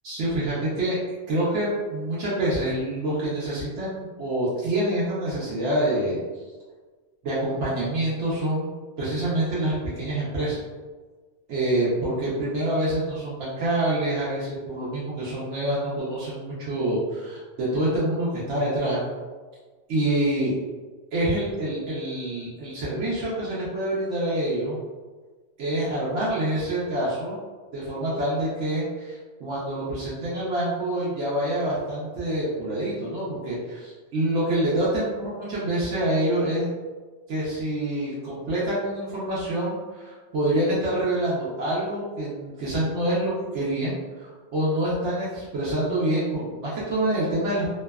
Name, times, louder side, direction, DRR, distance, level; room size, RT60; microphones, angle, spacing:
voice 1, 0.0-1.0 1.3-6.2 7.2-10.6 11.5-19.0 19.9-20.5 21.1-24.8 25.6-27.4 27.7-36.7 37.3-47.7, right 1 dB, 90° right, -8 dB, 1.0 m, -26 dB
2.6 x 2.2 x 2.2 m, 1.4 s
omnidirectional pair, 1.2 m